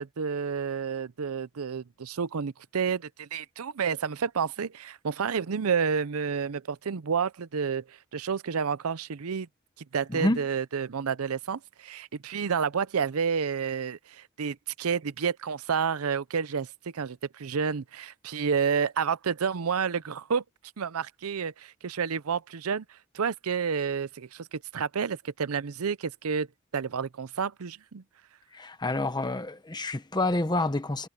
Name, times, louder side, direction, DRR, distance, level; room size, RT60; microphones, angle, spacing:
voice 1, 0.0-7.8 8.1-9.5 9.9-16.7 16.9-20.4 20.8-22.8 23.1-26.5 26.7-28.0, right 6 dB, 75° right, 0.6 m, -30 dB
voice 2, 10.1-10.4 28.5-31.1, left 2 dB, 20° left, 1.0 m, -28 dB
head